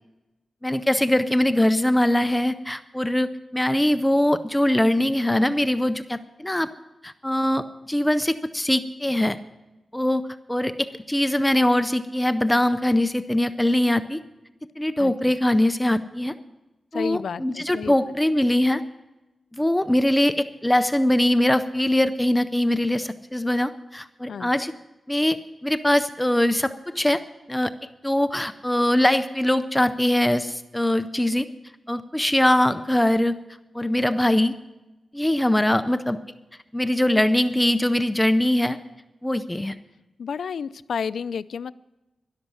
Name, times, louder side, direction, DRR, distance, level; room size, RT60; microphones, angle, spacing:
voice 1, 0.6-6.7 7.0-9.4 9.9-10.2 10.5-14.2 14.8-16.3 16.9-18.8 19.5-24.7 25.1-25.4 25.6-27.2 27.5-27.7 28.0-31.5 31.9-33.4 33.7-34.5 35.1-36.2 36.7-38.8 39.2-39.7, left 1 dB, 10° left, 11 dB, 0.5 m, -22 dB
voice 2, 16.9-17.9 24.3-24.5 40.2-41.7, left 6 dB, 80° left, 16 dB, 0.3 m, -31 dB
12.5 x 11.5 x 6.2 m, 1.0 s
wide cardioid pair, 130°, 0 cm